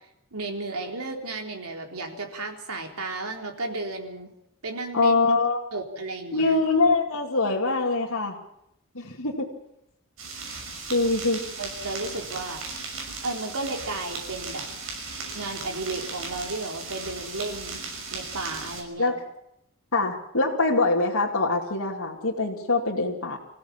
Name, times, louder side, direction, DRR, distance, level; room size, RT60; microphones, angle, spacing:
voice 1, 0.3-4.3 4.6-5.2 5.7-6.6 11.6-12.6 13.2-14.7 15.3-17.8 18.1-19.1, right 2 dB, 90° right, 2 dB, 3.9 m, -33 dB
voice 2, 4.9-5.6 6.3-8.3 8.9-9.5 10.9-11.5 19.0-19.2 19.9-23.4, left 3 dB, 90° left, -4 dB, 2.5 m, -23 dB
sound 1, 10.2-18.8, right 4 dB, 70° right, 6.6 m, -37 dB
26.0 x 16.5 x 7.3 m, 0.79 s
head